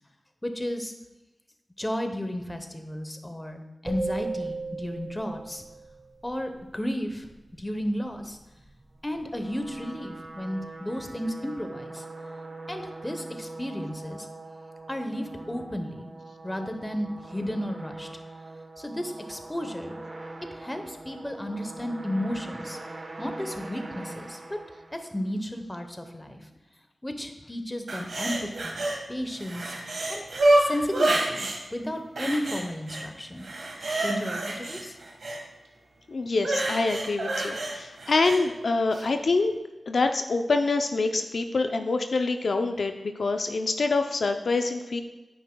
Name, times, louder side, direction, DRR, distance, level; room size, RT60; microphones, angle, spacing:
voice 1, 0.4-0.9 1.8-5.6 6.2-7.3 7.6-8.4 9.0-12.0 12.7-14.3 14.9-16.1 16.4-18.1 18.8-20.0 20.5-22.8 23.2-24.6 24.9-26.4 27.0-29.7 30.1-30.2 30.6-33.5 34.0-35.0, equal, 15° left, 6 dB, 0.9 m, -33 dB
sound 1, 3.9-6.1, right 3 dB, 25° right, 1.6 m, -35 dB
sound 2, 9.1-25.4, right 2 dB, 45° right, 1.0 m, -42 dB
sound 3, 27.9-29.0 29.3-31.6 32.2-33.0 33.4-35.4 36.4-38.4 38.9-39.0, right 1 dB, 80° right, 1.5 m, -27 dB
voice 2, 36.1-39.5 39.9-45.0, left 3 dB, 70° left, 6 dB, 0.5 m, -26 dB
9.4 x 9.2 x 2.3 m, 1.1 s
wide cardioid pair, 100°, 0 cm